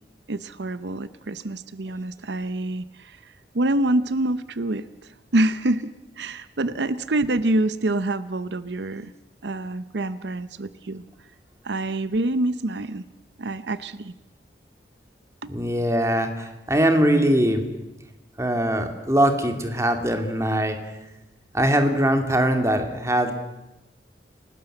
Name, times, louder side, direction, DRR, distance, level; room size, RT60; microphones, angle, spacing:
voice 1, 0.3-9.1 9.4-11.0 11.6-13.0 13.4-14.1 15.4-15.5, right 1 dB, 75° right, 14 dB, 0.8 m, -26 dB
voice 2, 15.5-17.6 18.4-20.8 21.5-23.3, right 1 dB, 15° right, 6 dB, 2.4 m, -21 dB
29.0 x 18.5 x 7.9 m, 0.98 s
head